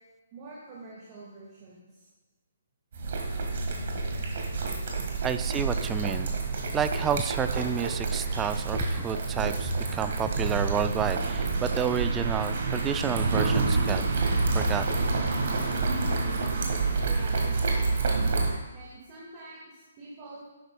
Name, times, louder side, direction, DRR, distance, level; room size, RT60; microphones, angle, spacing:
voice 1, 0.3-2.1 17.0-18.3 18.7-20.4, right 2 dB, 30° right, -5 dB, 1.9 m, -46 dB
sound 1, 2.9-18.5, right 3 dB, 50° right, 1.7 m, -28 dB
voice 2, 5.2-6.3 6.7-14.0 14.5-15.0, right 7 dB, 15° right, 10 dB, 0.4 m, -30 dB
11.0 x 8.2 x 2.3 m, 1.3 s
figure-of-eight pair, 135°, 0 cm